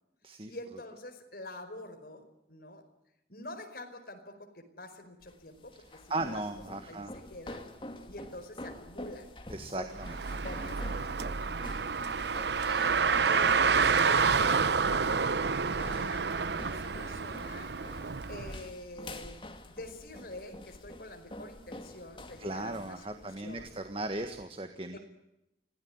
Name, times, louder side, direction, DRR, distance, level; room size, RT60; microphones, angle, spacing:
voice 1, 0.5-2.8 3.3-6.4 6.9-7.7 8.1-11.5 12.5-13.0 13.2-17.7 18.3-19.4 19.7-23.8 24.9-25.0, left 1 dB, 55° left, 5 dB, 5.0 m, -46 dB
sound 1, 5.2-24.4, left 1 dB, 30° left, 2.6 m, -48 dB
voice 2, 6.1-7.1 9.5-10.2 22.4-25.0, right 2 dB, 30° right, 7 dB, 1.5 m, -37 dB
Car, 9.9-18.5, right 5 dB, 75° right, 0.8 m, -28 dB
25.0 x 17.0 x 9.7 m, 0.88 s
head